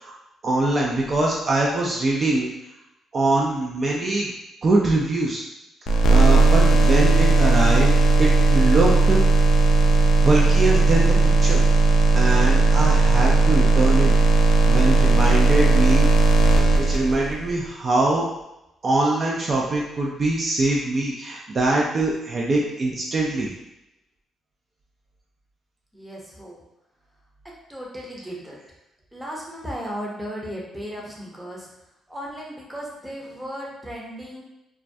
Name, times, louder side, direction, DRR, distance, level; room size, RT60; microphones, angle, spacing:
voice 1, 0.4-2.5 3.1-4.3 4.6-5.4 5.9-7.9 8.2-9.3 10.2-11.1 11.4-11.6 12.1-14.1 14.4-16.1 16.8-18.3 18.8-23.5, right 2 dB, 40° right, -3 dB, 0.4 m, -23 dB
sound 1, 5.9-17.5, right 3 dB, 70° left, 0.3 m, -17 dB
voice 2, 25.9-26.6 27.4-28.6 29.1-31.7 32.1-34.4, equal, 5° right, -3 dB, 0.6 m, -35 dB
2.2 x 2.1 x 2.6 m, 0.89 s
cardioid pair, 90°, 0 cm